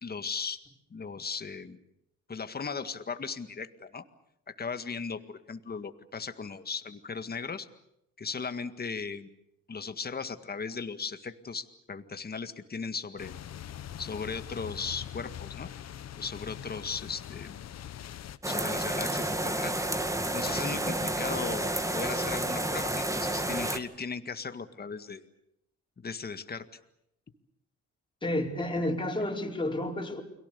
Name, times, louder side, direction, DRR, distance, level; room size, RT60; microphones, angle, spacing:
voice 1, 0.0-0.6 0.9-1.8 2.3-4.0 4.5-7.7 8.2-9.3 9.7-13.4 14.0-15.7 16.2-17.6 18.5-19.8 20.3-25.2 26.0-26.7 28.8-28.9, left 5 dB, 30° left, 9 dB, 1.9 m, -37 dB
sound 1, 13.2-18.4, left 10 dB, 60° left, 1.1 m, -42 dB
sound 2, 18.4-23.8, right 1 dB, 10° right, 2.2 m, -30 dB
voice 2, 28.2-30.2, left 1 dB, 15° left, 0 dB, 4.8 m, -30 dB
30.0 x 22.5 x 6.9 m, 0.79 s
cardioid pair, 90°, 30 cm